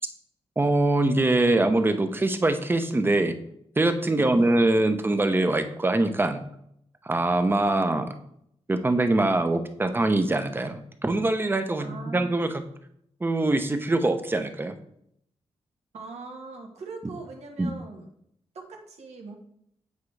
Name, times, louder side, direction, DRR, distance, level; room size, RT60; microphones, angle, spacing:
voice 1, 0.6-3.4 3.8-6.4 7.0-8.1 8.7-12.5 13.2-14.7 17.6-17.7, right 2 dB, 20° right, 7 dB, 0.7 m, -23 dB
voice 2, 4.2-4.6 11.8-12.3 15.9-18.1 18.5-19.4, right 3 dB, 80° right, 1 dB, 1.4 m, -40 dB
8.4 x 4.7 x 3.3 m, 0.72 s
wide cardioid pair, 115°, 11 cm